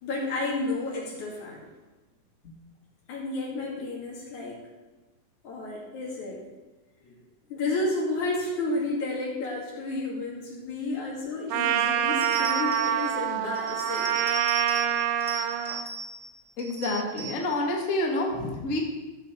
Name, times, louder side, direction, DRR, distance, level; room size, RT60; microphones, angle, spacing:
voice 1, 0.0-1.7 3.1-4.7 5.4-6.4 7.0-7.2 7.5-14.2, left 2 dB, 75° left, -3 dB, 3.6 m, -31 dB
Trumpet, 11.5-15.8, right 10 dB, 85° right, 2.0 m, -26 dB
sound 1, 12.2-13.1 13.6-14.9 15.2-16.2 16.6-17.5, right 4 dB, 20° left, 1.2 m, -37 dB
voice 2, 16.6-18.8, left 2 dB, 35° left, 0 dB, 1.4 m, -28 dB
13.5 x 6.6 x 4.4 m, 1.2 s
omnidirectional pair, 3.4 m